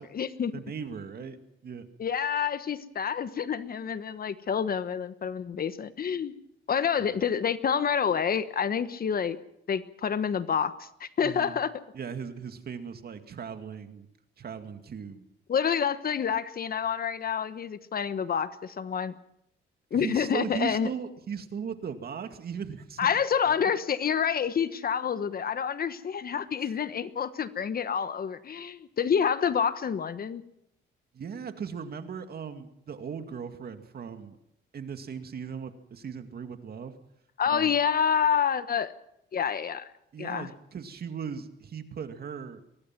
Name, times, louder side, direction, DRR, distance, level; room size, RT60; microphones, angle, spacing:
voice 1, 0.0-0.5 2.0-6.3 6.7-9.4 9.7-11.7 15.5-19.1 19.9-20.9 23.0-30.4 37.4-38.9 39.3-39.9 40.2-40.5, left 7 dB, 50° left, 13 dB, 1.2 m, -28 dB
voice 2, 0.5-1.4 1.6-1.9 7.0-7.2 11.2-11.6 11.9-14.1 14.4-15.2 19.9-23.1 23.5-23.7 26.6-26.7 31.1-34.4 34.7-36.9 37.5-37.7 40.1-42.6, right 6 dB, 50° right, 7 dB, 2.3 m, -38 dB
23.5 x 18.5 x 6.1 m, 0.80 s
cardioid pair, 90°, 20 cm